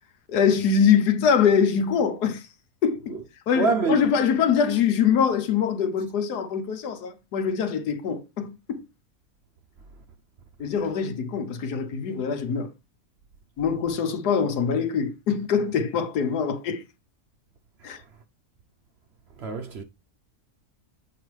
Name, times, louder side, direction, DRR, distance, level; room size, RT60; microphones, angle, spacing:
voice 1, 0.3-2.4 2.8-3.2 3.5-8.8 10.6-12.7 13.6-16.8 17.8-18.0, left 7 dB, 85° left, 1.4 m, -23 dB
voice 2, 3.6-4.0 19.4-19.8, right 4 dB, 55° right, 0.8 m, -25 dB
7.6 x 4.8 x 3.2 m
omnidirectional pair, 1.7 m